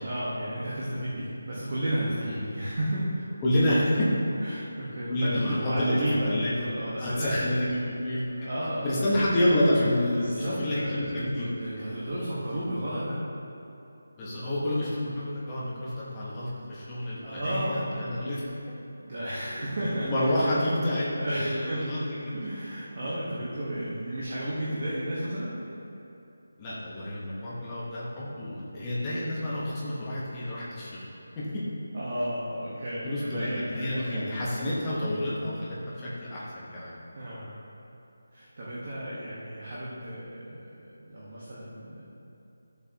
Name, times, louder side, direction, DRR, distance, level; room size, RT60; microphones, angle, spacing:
voice 1, 0.0-3.2 4.4-7.4 8.3-9.1 10.1-13.2 17.2-18.1 19.0-20.1 20.4-20.5 21.1-21.8 22.3-25.6 31.9-34.2 37.1-37.5 38.3-42.0, right 1 dB, 30° right, -8 dB, 1.3 m, -33 dB
voice 2, 3.4-4.1 5.1-6.5 7.0-8.5 8.8-11.5 14.2-18.4 19.8-22.3 26.6-31.0 31.4-31.6 33.0-36.9, left 1 dB, 10° left, -9 dB, 1.1 m, -29 dB
12.5 x 7.0 x 2.9 m, 2.8 s
figure-of-eight pair, 180°, 0 cm